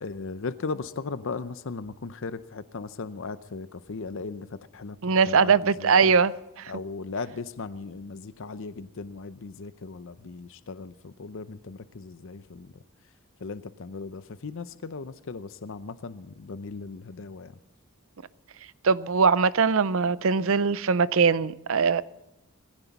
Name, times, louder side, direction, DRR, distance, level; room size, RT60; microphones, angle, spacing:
voice 1, 0.0-5.0 5.3-5.5 5.8-6.1 6.7-12.7 13.4-17.5, left 4 dB, 65° left, 0.6 m, -37 dB
voice 2, 5.0-6.7 18.8-22.0, right 5 dB, 70° right, 0.6 m, -21 dB
19.5 x 16.0 x 4.1 m
head